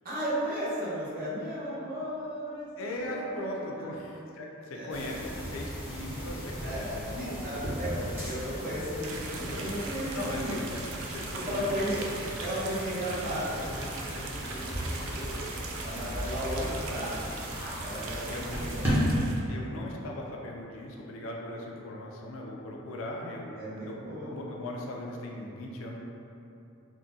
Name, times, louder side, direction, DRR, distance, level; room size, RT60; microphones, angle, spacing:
voice 1, 0.0-3.9 4.7-5.1 6.6-6.9 7.2-10.5 11.5-12.0 12.4-15.4 15.7-17.3 17.8-19.4 23.5-24.3, equal, 40° right, -9 dB, 0.8 m, -35 dB
voice 2, 2.8-7.7 10.1-10.8 11.1-11.9 18.3-18.6 19.5-23.6 23.8-26.0, left 1 dB, 70° left, -1 dB, 0.4 m, -39 dB
sound 1, 4.9-18.9, equal, 10° right, 0.7 m, -37 dB
sound 2, 9.0-19.4, right 3 dB, 70° right, 0.3 m, -41 dB
3.5 x 2.1 x 2.6 m, 2.7 s
head